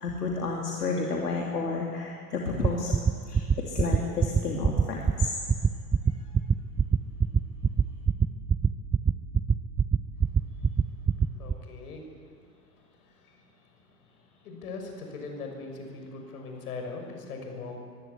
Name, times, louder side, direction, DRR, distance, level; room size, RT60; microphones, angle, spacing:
voice 1, 0.0-2.9 3.3-5.3, left 3 dB, 85° left, -1 dB, 2.9 m, -31 dB
sound 1, 2.6-11.5, right 6 dB, 10° right, 0.5 m, -21 dB
voice 2, 11.4-12.0 13.3-13.4 14.4-17.8, left 3 dB, 70° left, 3 dB, 6.1 m, -40 dB
23.5 x 16.5 x 9.6 m, 2.1 s
hypercardioid pair, 95°, 46 cm